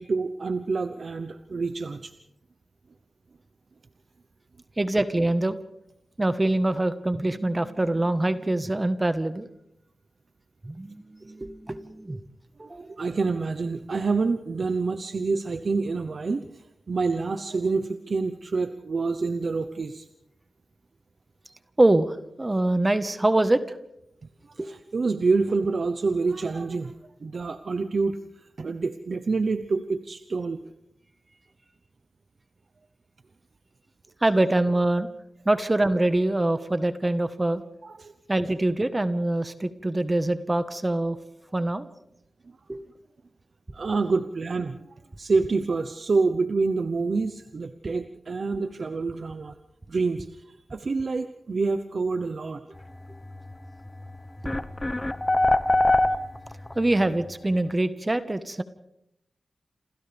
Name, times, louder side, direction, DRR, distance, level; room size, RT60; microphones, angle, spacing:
voice 1, 0.0-2.1 12.7-20.1 24.5-28.2 28.6-30.6 37.8-38.1 43.7-49.6 49.9-52.6, right 4 dB, 65° right, 9 dB, 0.9 m, -27 dB
voice 2, 4.8-5.6 6.2-9.5 10.6-12.2 12.6-12.9 21.8-23.8 24.6-24.7 34.2-35.1 35.4-37.6 38.3-41.2 41.5-41.9 42.7-42.8 56.7-58.6, right 1 dB, 25° right, 11 dB, 1.3 m, -24 dB
sound 1, 53.9-54.0 54.4-56.7, left 2 dB, 25° left, 1.2 m, -22 dB
28.0 x 27.5 x 3.5 m, 0.83 s
cardioid pair, 45°, 0 cm